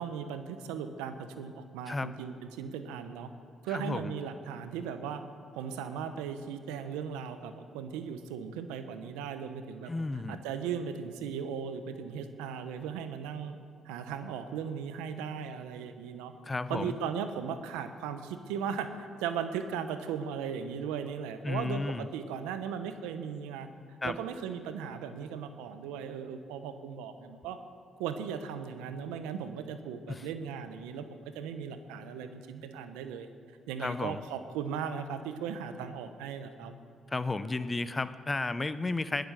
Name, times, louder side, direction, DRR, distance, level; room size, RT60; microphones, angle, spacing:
voice 1, 0.0-3.3 3.6-5.2 5.6-9.9 10.3-13.6 13.8-16.3 16.7-23.7 24.0-27.6 28.0-33.3 33.7-36.7, right 7 dB, 85° right, 9 dB, 0.9 m, -37 dB
voice 2, 3.7-4.1 9.9-10.4 16.4-16.9 21.4-22.1 24.0-24.2 30.1-30.3 33.8-34.2 37.1-39.2, left 3 dB, 25° left, 13 dB, 0.8 m, -33 dB
20.5 x 7.9 x 6.7 m, 2.1 s
hypercardioid pair, 55°, 0 cm